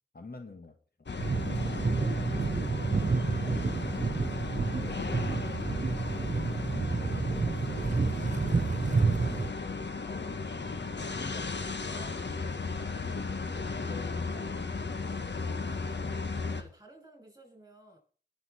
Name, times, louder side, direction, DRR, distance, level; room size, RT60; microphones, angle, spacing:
voice 1, 0.1-0.8 3.8-4.2 8.9-14.6 15.0-15.3, left 3 dB, 60° left, 5 dB, 1.8 m, -47 dB
sound 1, 1.1-16.6, left 4 dB, 80° left, 1.5 m, -36 dB
sound 2, 1.2-9.5, right 4 dB, 45° right, 0.6 m, -29 dB
voice 2, 1.4-4.5 4.7-8.5 15.6-18.0, equal, 20° right, 2 dB, 7.1 m, -53 dB
21.5 x 7.4 x 4.4 m, 0.44 s
wide cardioid pair, 45°, 18 cm